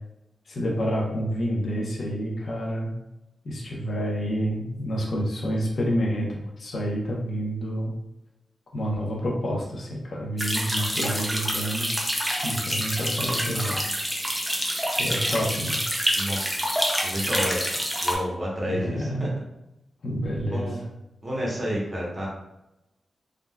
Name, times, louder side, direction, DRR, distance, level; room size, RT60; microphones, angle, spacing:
voice 1, 0.5-2.9 3.4-8.0 8.7-13.9 14.9-15.8 18.7-19.3 20.0-20.8, equal, 55° left, -2 dB, 0.7 m, -28 dB
sound 1, 10.4-18.1, equal, 5° right, 0.5 m, -27 dB
voice 2, 16.1-16.7 17.0-17.7 18.0-19.3 20.5-20.8 21.2-22.3, equal, 30° right, -4 dB, 0.9 m, -30 dB
3.6 x 2.3 x 2.2 m, 0.90 s
wide cardioid pair, 145°, 0 cm